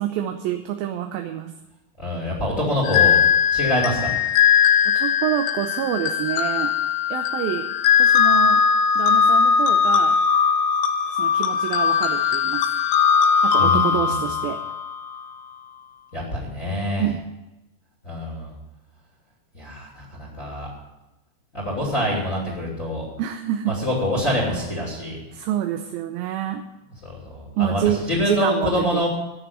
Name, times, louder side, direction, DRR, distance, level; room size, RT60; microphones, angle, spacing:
voice 1, 0.0-1.5 4.9-6.7 7.1-7.7 8.0-8.6 9.0-10.2 11.1-12.6 13.4-14.6 17.0-17.2 23.2-23.8 25.3-26.6 27.6-29.1, right 11 dB, 80° right, 6 dB, 2.5 m, -27 dB
voice 2, 2.0-3.2 3.5-4.4 13.6-14.2 16.1-17.1 18.0-18.5 19.5-20.7 21.5-23.1 23.7-25.2 27.0-29.1, left 1 dB, 25° left, -3 dB, 2.8 m, -26 dB
sound 1, 2.8-15.2, left 7 dB, 70° left, 2.0 m, -19 dB
12.0 x 7.0 x 9.5 m, 0.99 s
omnidirectional pair, 4.3 m